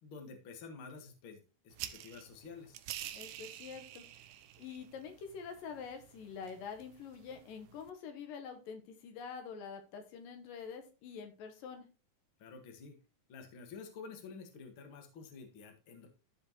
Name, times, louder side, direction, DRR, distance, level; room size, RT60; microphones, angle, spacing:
voice 1, 0.0-2.8 12.4-13.0 13.3-16.1, left 5 dB, 45° left, 4 dB, 2.0 m, -50 dB
sound 1, 1.7-7.9, right 12 dB, 85° right, 2.3 m, -49 dB
voice 2, 3.1-4.0 4.6-11.9, left 6 dB, 75° left, 6 dB, 2.8 m, -46 dB
14.0 x 5.0 x 3.0 m, 0.33 s
omnidirectional pair, 4.0 m